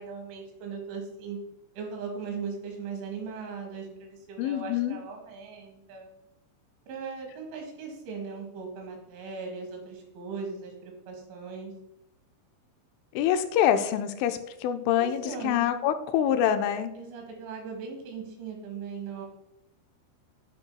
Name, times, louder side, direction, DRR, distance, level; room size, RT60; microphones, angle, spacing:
voice 1, 0.0-1.4 1.8-6.1 6.9-11.7 15.0-15.7 17.0-19.3, right 5 dB, 80° right, 1 dB, 3.8 m, -38 dB
voice 2, 4.4-5.0 13.1-16.9, left 10 dB, 90° left, 9 dB, 3.0 m, -25 dB
10.5 x 5.3 x 2.2 m, 0.84 s
omnidirectional pair, 5.4 m